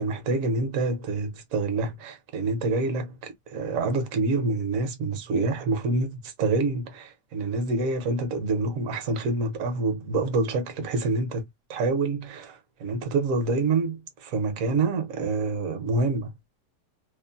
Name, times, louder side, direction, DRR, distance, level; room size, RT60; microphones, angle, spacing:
voice 1, 0.0-11.4 11.7-16.3, right 3 dB, 60° right, 1.0 m, -27 dB
3.0 x 2.0 x 2.4 m
omnidirectional pair, 1.8 m